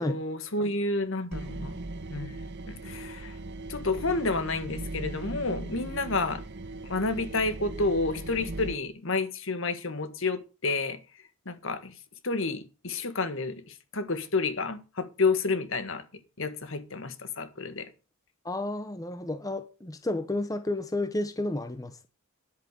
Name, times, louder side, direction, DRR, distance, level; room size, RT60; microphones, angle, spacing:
voice 1, 0.0-1.8 2.1-2.4 2.7-3.4 3.7-6.4 6.9-11.0 11.4-11.9 12.2-16.0 16.4-17.9, left 3 dB, 60° left, 1.6 m, -30 dB
sound 1, 1.3-8.7, right 2 dB, 50° right, 0.8 m, -39 dB
voice 2, 18.4-22.1, left 2 dB, 15° left, 0.8 m, -31 dB
10.5 x 8.3 x 6.7 m
head